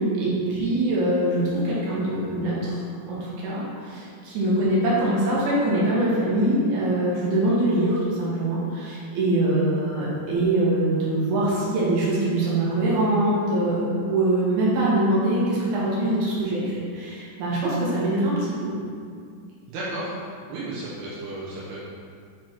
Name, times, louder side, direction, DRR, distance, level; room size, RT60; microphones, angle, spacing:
voice 1, 0.0-2.8 3.1-18.7, right 1 dB, 60° right, -7 dB, 3.1 m, -23 dB
voice 2, 19.7-21.8, right 1 dB, 75° right, -8 dB, 2.5 m, -33 dB
7.6 x 4.3 x 4.4 m, 2.2 s
omnidirectional pair, 5.9 m